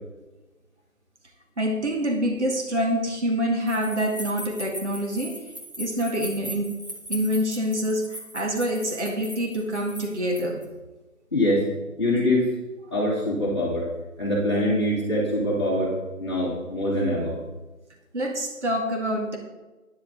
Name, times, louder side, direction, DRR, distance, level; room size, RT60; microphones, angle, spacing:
voice 1, 1.6-5.4 5.8-6.8 7.1-10.6 18.1-19.4, equal, 55° right, 2 dB, 2.1 m, -26 dB
sound 1, 3.7-10.6, equal, 30° right, 1.7 m, -39 dB
voice 2, 11.3-11.7 12.0-12.5 12.9-13.9 14.2-17.4, left 1 dB, 20° left, -7 dB, 2.3 m, -24 dB
12.0 x 10.5 x 4.0 m, 1.1 s
figure-of-eight pair, 180°, 42 cm